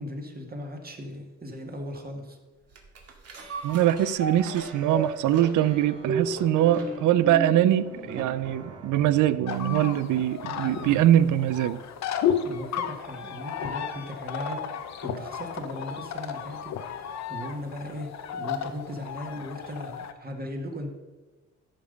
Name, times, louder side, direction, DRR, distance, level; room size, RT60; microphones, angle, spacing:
voice 1, 0.0-2.4 12.4-20.9, equal, 30° right, 2 dB, 1.8 m, -38 dB
sound 1, 2.7-11.3 11.7-11.8, right 3 dB, 55° right, 2.1 m, -36 dB
voice 2, 3.6-11.8, right 12 dB, 80° right, 16 dB, 0.6 m, -23 dB
sound 2, 9.2-9.3 10.1-13.2 13.5-14.0 14.4-14.5 14.8-15.5 16.2-16.9 17.5-17.7, left 9 dB, 90° left, 1.0 m, -32 dB
sound 3, 9.5-20.1, left 8 dB, 65° left, 0.9 m, -36 dB
13.0 x 5.2 x 5.3 m, 1.3 s
cardioid pair, 90°, 30 cm